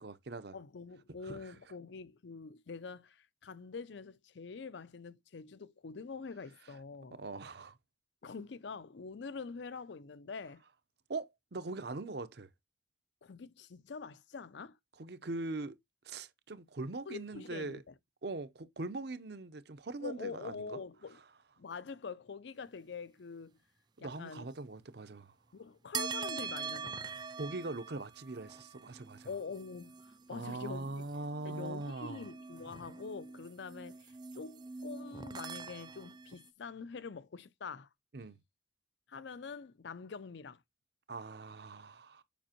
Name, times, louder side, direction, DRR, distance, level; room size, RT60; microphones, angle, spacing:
voice 1, 0.0-0.5 1.2-1.5 7.1-7.8 11.1-12.5 15.0-15.8 16.0-17.8 18.2-20.8 24.0-25.3 27.4-29.3 30.3-32.3 38.1-38.4 41.1-42.2, right 3 dB, 55° right, 0.7 m, -41 dB
voice 2, 0.5-7.2 8.2-10.6 13.2-14.8 17.1-17.9 20.0-21.2 21.6-23.6 24.0-24.5 25.5-27.1 29.2-31.0 31.4-37.9 39.1-40.6, left 5 dB, 65° left, 0.5 m, -45 dB
sound 1, 25.9-36.5, right 5 dB, 20° right, 0.3 m, -44 dB
7.1 x 5.3 x 2.9 m
head